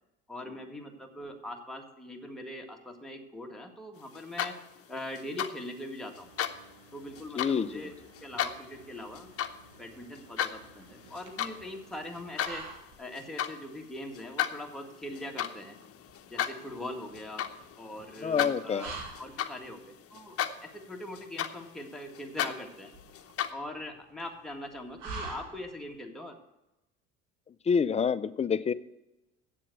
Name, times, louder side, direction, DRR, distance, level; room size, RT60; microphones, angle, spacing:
voice 1, 0.3-4.5 4.9-6.3 6.9-7.9 8.2-9.3 9.8-12.6 13.0-15.8 16.3-17.5 17.8-20.4 20.7-22.9 23.5-26.4, left 1 dB, ahead, 0 dB, 1.8 m, -42 dB
sound 1, 4.1-4.8 5.2-5.5 6.2-6.6 7.2-7.5 8.1-8.6 9.1-9.5 9.9-10.6 11.0-11.6 11.9-12.6 13.2-13.6 14.1-19.9 20.1-20.8 21.2-23.5, left 10 dB, 40° left, 0.9 m, -34 dB
Mechanical fan, 6.1-12.7, right 3 dB, 90° right, 3.8 m, -58 dB
voice 2, 7.4-7.9 18.2-18.9 27.7-28.7, left 6 dB, 20° left, 14 dB, 0.5 m, -27 dB
sound 2, 9.0-26.0, right 3 dB, 60° right, 2.1 m, -48 dB
7.8 x 7.5 x 7.9 m, 0.94 s
hypercardioid pair, 65°, 36 cm